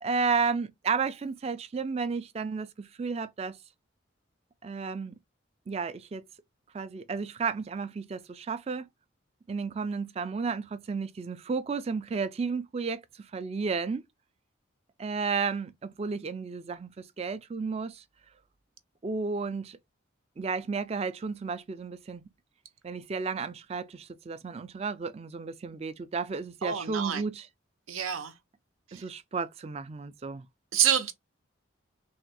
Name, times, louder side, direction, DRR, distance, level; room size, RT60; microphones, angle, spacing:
voice 1, 0.0-3.6 4.6-5.1 5.7-6.2 6.7-8.9 9.5-14.0 15.0-18.0 19.0-19.8 20.4-22.2 22.8-27.5 28.9-30.4, right 5 dB, 30° right, 0.3 m, -32 dB
voice 2, 26.6-27.2 27.9-28.3 28.9-29.0 30.7-31.1, right 9 dB, 90° right, 0.7 m, -27 dB
3.4 x 2.2 x 4.1 m
head